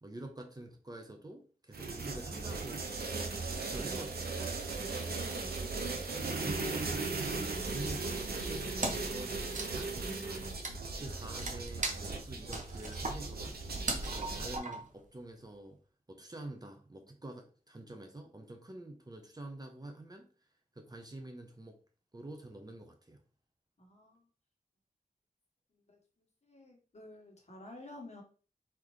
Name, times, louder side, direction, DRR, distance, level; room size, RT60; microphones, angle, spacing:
voice 1, 0.0-3.3 3.5-4.4 5.9-7.1 7.6-10.5 11.0-13.6 14.0-15.8 16.1-20.3 20.7-21.8 22.1-23.2, right 1 dB, 25° right, 3 dB, 0.8 m, -47 dB
sound 1, 1.7-14.6, right 3 dB, 85° right, 0.7 m, -37 dB
voice 2, 4.7-5.3 23.8-24.2 25.9-26.0 26.4-28.2, left 1 dB, 45° left, 1 dB, 1.4 m, -51 dB
Wood, 8.8-9.2 9.4-15.0, right 3 dB, 50° right, 1.0 m, -39 dB
4.1 x 4.0 x 3.2 m, 0.38 s
wide cardioid pair, 100°, 16 cm